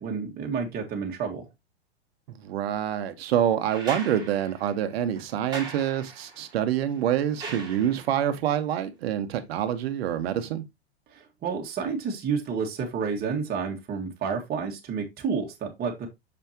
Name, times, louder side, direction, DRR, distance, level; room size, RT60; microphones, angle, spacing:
voice 1, 0.0-1.5 11.1-16.1, right 5 dB, 30° right, 1.9 m, -30 dB
voice 2, 2.3-10.6, right 10 dB, 65° right, 1.4 m, -26 dB
sound 1, 3.7-8.3 9.9-10.0, right 3 dB, 10° right, 3.1 m, -41 dB
6.6 x 5.7 x 2.9 m
hypercardioid pair, 105°, 33 cm